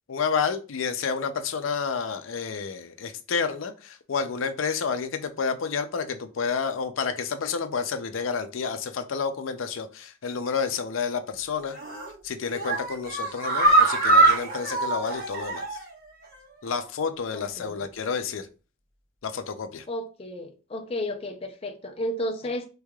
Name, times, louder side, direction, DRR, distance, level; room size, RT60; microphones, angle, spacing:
voice 1, 0.1-11.8 12.2-15.8 16.6-18.5 19.2-19.8, left 5 dB, 75° left, 0.5 m, -30 dB
sound 1, 11.7-12.1 12.5-15.9 16.2-16.3 16.7-16.8, right 2 dB, 45° right, 1.1 m, -23 dB
voice 2, 17.3-17.8 19.9-22.7, left 1 dB, 30° left, 0.5 m, -33 dB
3.5 x 3.2 x 2.3 m
head